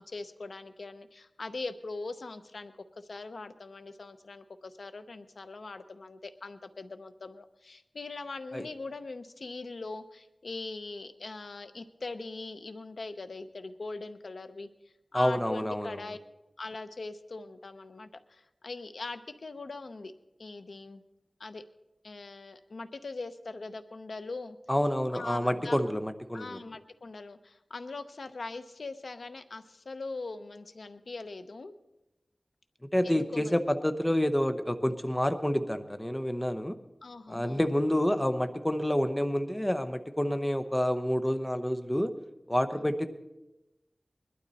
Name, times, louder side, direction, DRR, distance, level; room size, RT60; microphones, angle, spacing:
voice 1, 0.0-14.7 15.1-16.2 16.6-20.1 20.4-21.0 21.4-21.6 22.0-24.6 25.1-25.8 26.3-31.8 33.0-33.5 37.0-37.7 42.7-42.9, left 3 dB, 90° left, 9 dB, 0.7 m, -41 dB
voice 2, 15.1-16.0 24.7-26.6 32.9-36.8 37.3-42.1 42.5-43.1, equal, 15° left, 9 dB, 0.9 m, -28 dB
21.0 x 12.0 x 4.1 m, 0.98 s
wide cardioid pair, 65°, 0 cm